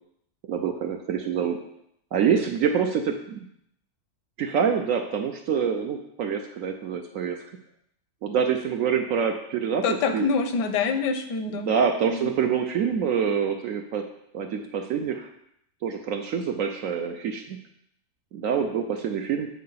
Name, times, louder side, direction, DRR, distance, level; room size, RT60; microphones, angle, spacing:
voice 1, 0.5-1.6 2.1-3.4 4.4-7.4 8.2-10.3 11.5-14.0 14.3-15.3 15.8-17.6 18.3-19.5, right 7 dB, 70° right, 4 dB, 0.8 m, -26 dB
voice 2, 9.8-11.7 12.0-12.3, left 5 dB, 80° left, 7 dB, 1.4 m, -26 dB
8.5 x 4.6 x 4.0 m, 0.74 s
omnidirectional pair, 1.8 m